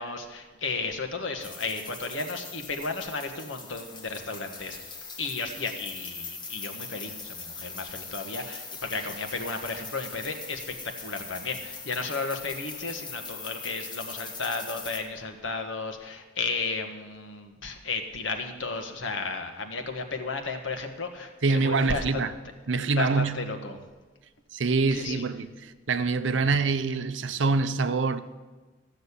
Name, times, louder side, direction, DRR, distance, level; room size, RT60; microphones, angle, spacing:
voice 1, 0.0-22.2 22.9-23.8 24.9-25.2, left 3 dB, 85° left, 1.5 m, -34 dB
sound 1, 1.4-15.0, left 4 dB, 25° left, 1.5 m, -41 dB
voice 2, 21.4-22.3 22.7-23.5 24.5-28.2, right 4 dB, 75° right, 0.7 m, -25 dB
14.5 x 6.6 x 8.3 m
head